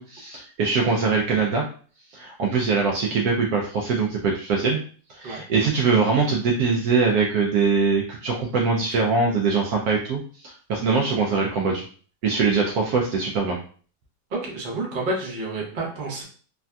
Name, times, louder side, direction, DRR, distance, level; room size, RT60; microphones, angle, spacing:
voice 1, 0.0-1.6 2.1-4.8 5.1-10.2 10.4-11.8 12.2-13.6, right 4 dB, 70° right, -1 dB, 0.9 m, -22 dB
voice 2, 14.3-16.2, right 2 dB, 40° right, -3 dB, 0.7 m, -29 dB
3.3 x 2.6 x 2.2 m, 0.42 s
omnidirectional pair, 1.9 m